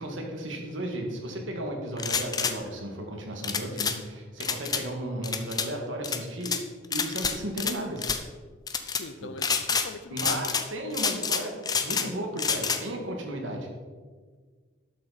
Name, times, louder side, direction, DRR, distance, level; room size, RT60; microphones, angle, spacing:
voice 1, 0.0-6.6 6.9-8.2 9.2-9.3 10.1-13.7, right 1 dB, 85° right, 2 dB, 2.1 m, -34 dB
sound 1, 2.0-2.5 3.4-4.0 4.4-4.8 5.2-5.7 6.0-6.6 6.9-7.7 8.0-8.2 8.7-9.0 9.4-9.9 10.2-10.7 10.9-12.1 12.4-12.8, left 6 dB, 20° left, 0.6 m, -28 dB
voice 2, 8.9-10.6, left 4 dB, 75° left, 12 dB, 0.6 m, -41 dB
12.5 x 7.6 x 4.3 m, 1.5 s
head